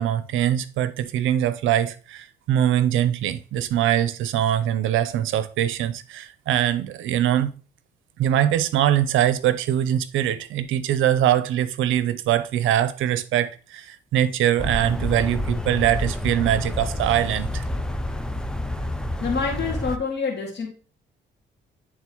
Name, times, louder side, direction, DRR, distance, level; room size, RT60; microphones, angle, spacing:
voice 1, 0.0-7.5 8.2-17.6, right 11 dB, 80° right, 0.6 m, -22 dB
sound 1, 14.6-20.0, left 1 dB, 5° left, 0.5 m, -28 dB
voice 2, 19.2-20.7, left 5 dB, 60° left, 2.0 m, -26 dB
10.5 x 3.7 x 3.0 m
cardioid pair, 90°, 20 cm